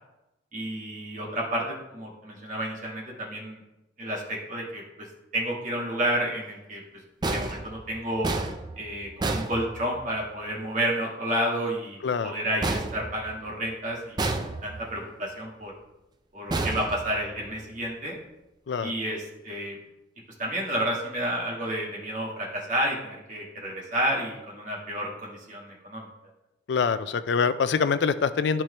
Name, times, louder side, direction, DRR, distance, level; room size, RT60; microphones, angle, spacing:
voice 1, 0.5-3.6 4.0-5.1 5.3-6.8 7.2-8.3 8.8-15.7 16.3-18.1 18.8-19.8 20.4-26.1, right 1 dB, 40° right, -3 dB, 1.7 m, -30 dB
sound 1, 7.2-10.3 12.6-13.7 14.2-15.0 16.5-17.6, right 2 dB, 20° right, 0.4 m, -31 dB
voice 2, 12.0-12.3 18.7-18.9 26.7-28.6, left 5 dB, 65° left, 13 dB, 0.4 m, -25 dB
11.5 x 4.4 x 3.2 m, 0.95 s
head